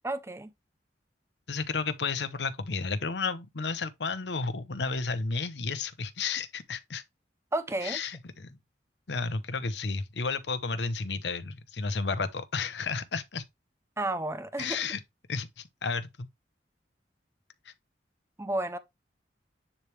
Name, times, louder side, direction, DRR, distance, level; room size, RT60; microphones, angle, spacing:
voice 1, 0.0-0.5 7.5-8.0 14.0-14.9 18.4-18.8, right 1 dB, 15° right, 0.6 m, -32 dB
voice 2, 1.5-7.0 7.8-8.5 9.1-13.4 14.6-15.0 15.3-16.3, left 4 dB, 75° left, 0.8 m, -32 dB
9.9 x 3.3 x 3.2 m
head